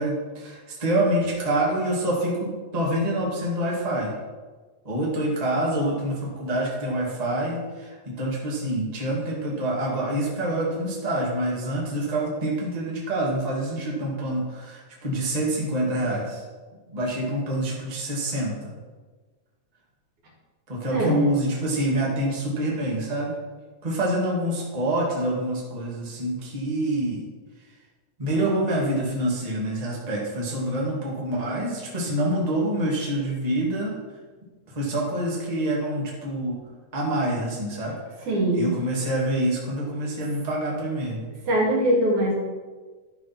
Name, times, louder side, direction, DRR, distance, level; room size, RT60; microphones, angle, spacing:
voice 1, 0.0-4.1 4.8-16.4 16.9-18.5 20.7-23.3 23.8-27.2 28.2-33.9 34.7-36.6 36.9-38.0 38.5-41.2, right 1 dB, 15° right, -4 dB, 1.8 m, -26 dB
voice 2, 20.9-21.4 38.2-38.7 41.5-42.4, equal, 70° right, -2 dB, 3.5 m, -22 dB
11.0 x 5.1 x 6.0 m, 1.4 s
omnidirectional pair, 3.5 m